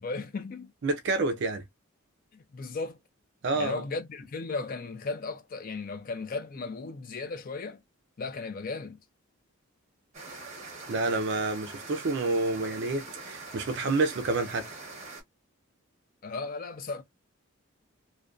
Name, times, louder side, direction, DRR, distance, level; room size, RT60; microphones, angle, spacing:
voice 1, 0.0-0.7 2.3-3.0 3.5-7.8 8.2-9.0 16.2-17.0, left 3 dB, 40° left, 0.4 m, -36 dB
voice 2, 0.8-1.6 3.4-3.8 10.9-14.7, right 3 dB, 55° right, 0.4 m, -28 dB
sound 1, 10.1-15.2, right 3 dB, 35° right, 0.8 m, -43 dB
2.4 x 2.1 x 2.3 m
head